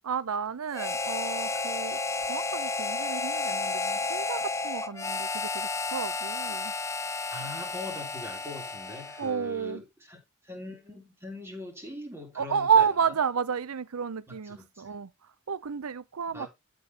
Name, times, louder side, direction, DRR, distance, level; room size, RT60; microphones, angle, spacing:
voice 1, 0.0-6.7 9.2-9.8 12.4-16.5, right 6 dB, 85° right, 0.6 m, -31 dB
Harmonica, 0.7-9.4, left 3 dB, 15° left, 0.5 m, -32 dB
voice 2, 7.3-12.9 14.3-14.9 16.3-16.5, left 2 dB, 10° right, 3.4 m, -42 dB
13.0 x 5.2 x 2.9 m
head